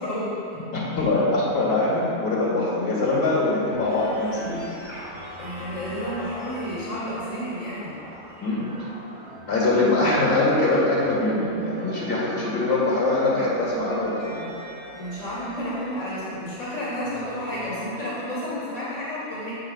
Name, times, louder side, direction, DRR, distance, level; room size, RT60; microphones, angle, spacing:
voice 1, 0.0-0.6 5.4-8.0 15.0-19.5, equal, 60° left, -9 dB, 1.9 m, -31 dB
voice 2, 0.7-4.6 8.4-8.7 9.5-14.5, left 2 dB, 45° left, -7 dB, 1.9 m, -23 dB
sound 1, 3.7-17.9, left 1 dB, 20° left, 1.5 m, -41 dB
7.2 x 5.6 x 4.0 m, 2.7 s
omnidirectional pair, 1.5 m